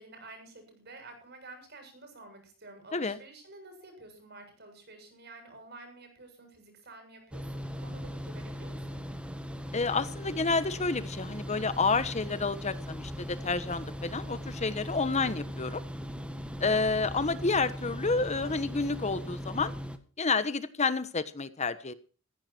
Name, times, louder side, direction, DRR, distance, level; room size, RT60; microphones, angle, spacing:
voice 1, 0.0-9.1, right 2 dB, 55° right, 5 dB, 7.9 m, -50 dB
sound 1, 7.3-20.0, equal, 5° right, 1.7 m, -39 dB
voice 2, 9.7-15.8 16.6-19.7 20.2-21.9, left 4 dB, 35° left, 13 dB, 1.1 m, -29 dB
15.5 x 15.5 x 4.5 m, 0.37 s
head